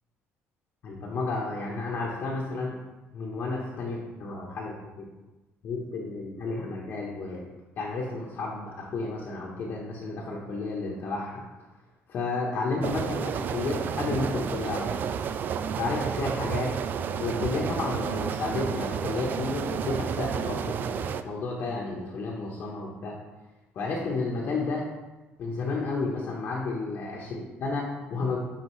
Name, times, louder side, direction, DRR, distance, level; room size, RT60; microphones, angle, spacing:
voice 1, 0.8-2.8 3.1-4.7 5.0-5.1 5.6-7.5 7.8-11.4 12.1-15.0 15.8-16.7 17.2-23.2 23.7-24.8 25.4-28.4, left 3 dB, 50° left, -3 dB, 1.1 m, -32 dB
sound 1, 12.8-21.2, right 7 dB, 40° right, 0.3 m, -31 dB
9.9 x 4.5 x 3.2 m, 1.1 s
cardioid pair, 145°, 5 cm